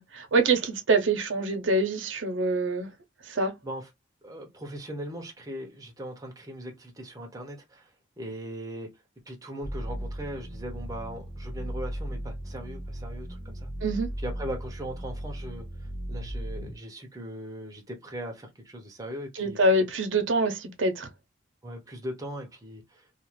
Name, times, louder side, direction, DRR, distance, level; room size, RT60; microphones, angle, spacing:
voice 1, 0.0-2.9 3.3-3.5 13.8-14.1 19.4-21.1, right 2 dB, 85° right, 0.7 m, -25 dB
voice 2, 4.2-7.9 8.2-8.9 9.3-13.7 14.2-19.6 21.6-23.1, equal, 20° right, 0.7 m, -39 dB
sound 1, 9.6-16.7, equal, 70° left, 1.0 m, -36 dB
2.4 x 2.4 x 3.0 m
head